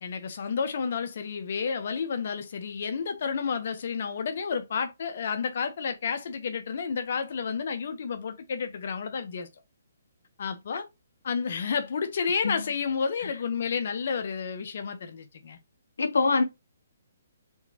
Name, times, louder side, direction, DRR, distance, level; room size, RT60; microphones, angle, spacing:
voice 1, 0.0-9.5 10.4-10.9 11.2-15.6, left 6 dB, 55° left, 0.9 m, -31 dB
voice 2, 16.0-16.4, left 4 dB, 85° left, 0.9 m, -25 dB
4.8 x 2.9 x 2.8 m
hypercardioid pair, 155°, 0 cm